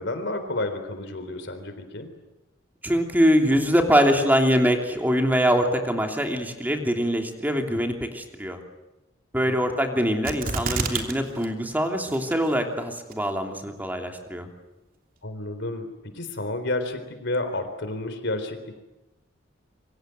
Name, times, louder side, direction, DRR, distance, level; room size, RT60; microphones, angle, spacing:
voice 1, 0.0-2.1 9.4-9.6 15.2-18.8, left 2 dB, 65° left, 9 dB, 3.9 m, -31 dB
voice 2, 2.8-8.6 9.3-14.5, equal, 10° right, 3 dB, 3.0 m, -23 dB
sound 1, 10.3-11.1 11.4-11.5 12.1-12.6 13.1-13.2, right 3 dB, 50° right, 3.1 m, -28 dB
27.0 x 24.0 x 7.8 m, 1.0 s
head